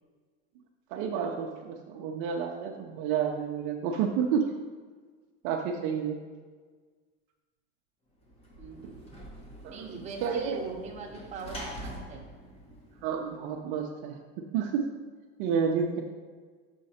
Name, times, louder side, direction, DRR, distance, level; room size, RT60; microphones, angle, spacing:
voice 1, 0.9-4.4 5.4-6.2 9.6-9.9 10.2-10.6 13.0-14.2 14.5-14.8 15.4-16.0, right 7 dB, 50° right, 1 dB, 0.7 m, -30 dB
Sliding door / Slam, 8.2-13.6, equal, 20° left, 1.1 m, -45 dB
voice 2, 8.6-9.2 9.7-12.3, right 4 dB, 20° right, -1 dB, 1.0 m, -42 dB
6.4 x 5.4 x 4.2 m, 1.5 s
supercardioid pair, 150°, 32 cm